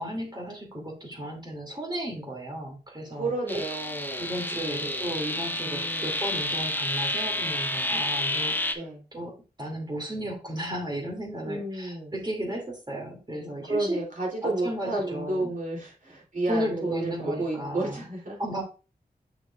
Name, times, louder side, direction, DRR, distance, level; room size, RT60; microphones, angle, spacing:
voice 1, 0.0-3.3 4.2-8.6 9.1-14.0 14.4-15.6 16.5-18.0 18.4-18.6, equal, 25° right, 0 dB, 2.4 m, -34 dB
voice 2, 3.1-5.0 5.7-6.2 8.7-9.0 11.4-12.1 13.7-18.4, right 2 dB, 50° right, -3 dB, 3.1 m, -32 dB
sound 1, 3.5-8.8, left 1 dB, 10° left, 0.9 m, -30 dB
6.8 x 6.2 x 2.4 m, 0.33 s
cardioid pair, 45°, 18 cm